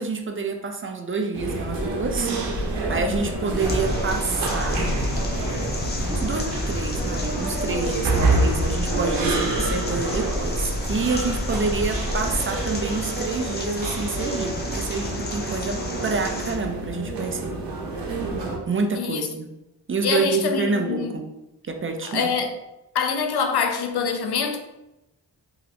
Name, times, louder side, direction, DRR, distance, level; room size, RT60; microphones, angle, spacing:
voice 1, 0.0-2.3 2.9-4.8 6.1-17.5 18.7-19.5 19.9-21.3 21.7-22.3, right 4 dB, 30° right, 0.4 m, -28 dB
sound 1, 1.3-18.6, right 2 dB, 70° right, 0.8 m, -28 dB
sound 2, 1.7-12.4, left 1 dB, 10° right, 1.3 m, -32 dB
sound 3, 3.6-16.6, left 1 dB, 25° left, 0.6 m, -32 dB
voice 2, 19.0-19.3 20.0-21.2 22.0-22.5 22.9-24.6, left 5 dB, 65° left, 0.5 m, -25 dB
3.0 x 2.9 x 2.5 m
cardioid pair, 55°, 43 cm